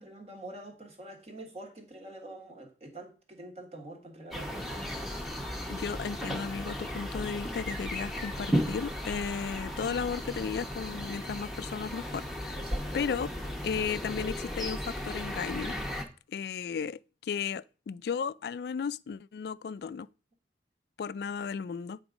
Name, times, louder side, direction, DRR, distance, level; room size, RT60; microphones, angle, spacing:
voice 1, 0.0-4.9 12.6-13.0, right 2 dB, 35° right, 1.5 m, -46 dB
sound 1, 4.3-16.0, equal, ahead, 0.9 m, -35 dB
voice 2, 5.7-12.6 12.9-13.3 13.6-15.7 16.3-20.1 21.0-22.0, left 6 dB, 65° left, 0.3 m, -35 dB
8.9 x 3.8 x 5.0 m
head